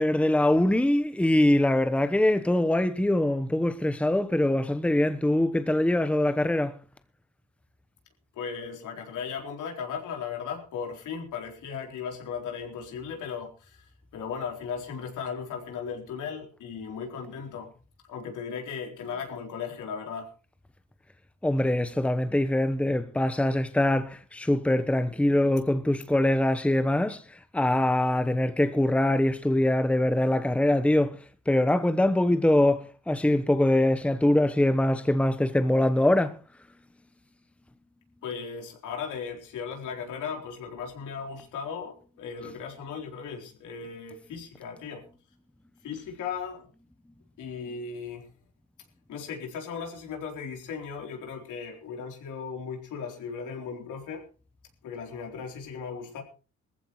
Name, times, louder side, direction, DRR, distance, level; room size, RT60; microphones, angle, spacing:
voice 1, 0.0-6.7 21.4-31.2 31.5-36.4, left 1 dB, 5° left, 1.0 m, -23 dB
voice 2, 8.3-17.7 18.1-20.3 38.2-45.1 45.8-46.7 47.4-48.3 49.1-54.2 54.8-56.2, left 6 dB, 80° left, 4.0 m, -37 dB
20.0 x 15.0 x 3.2 m
cardioid pair, 90°, 30 cm